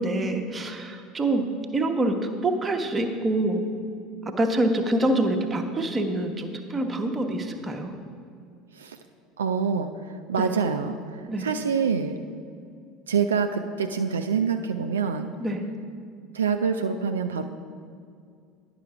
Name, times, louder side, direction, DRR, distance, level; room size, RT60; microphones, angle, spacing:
voice 1, 0.0-1.5 1.7-3.7 4.4-7.9 11.3-11.5 15.4-15.6, right 1 dB, 20° right, 4 dB, 0.9 m, -26 dB
voice 2, 9.4-12.2 13.1-15.3 16.3-17.5, right 6 dB, 75° right, 7 dB, 0.3 m, -26 dB
10.5 x 5.7 x 4.8 m, 2.3 s
figure-of-eight pair, 70°, 0 cm